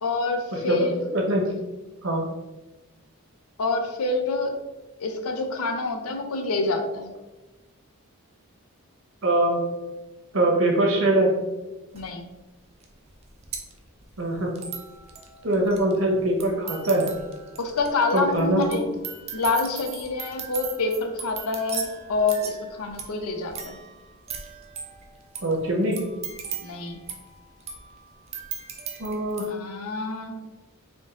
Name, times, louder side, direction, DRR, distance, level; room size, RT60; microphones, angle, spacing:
voice 1, 0.0-1.0 3.6-4.6 5.0-7.1 11.9-12.2 17.6-18.8 19.3-23.8 26.6-27.0 29.5-30.4, left 3 dB, 80° left, 5 dB, 0.5 m, -27 dB
voice 2, 0.5-0.9 1.1-1.4 2.0-2.3 9.2-9.6 10.3-11.3 14.2-14.5 15.4-17.1 18.1-18.8 25.4-26.0 29.0-29.5, right 1 dB, 60° right, -1 dB, 1.0 m, -22 dB
sound 1, 12.0-12.1 12.8-12.9 13.1-29.5, right 6 dB, 30° right, 0.4 m, -38 dB
3.7 x 2.5 x 3.7 m, 1.1 s
head